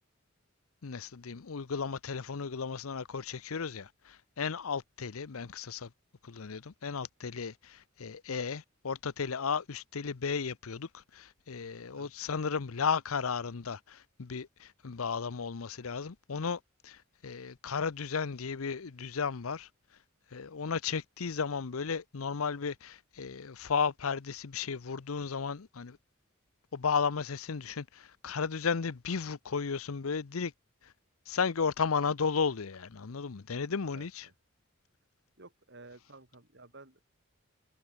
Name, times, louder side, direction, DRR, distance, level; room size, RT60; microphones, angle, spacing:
voice 1, 0.8-5.9 6.2-19.7 20.3-26.0 26.7-30.5 30.8-30.9 31.3-34.3, left 5 dB, 90° left, 0.7 m, -34 dB
voice 2, 33.9-34.3 35.4-37.0, right 2 dB, 55° right, 4.4 m, -53 dB
head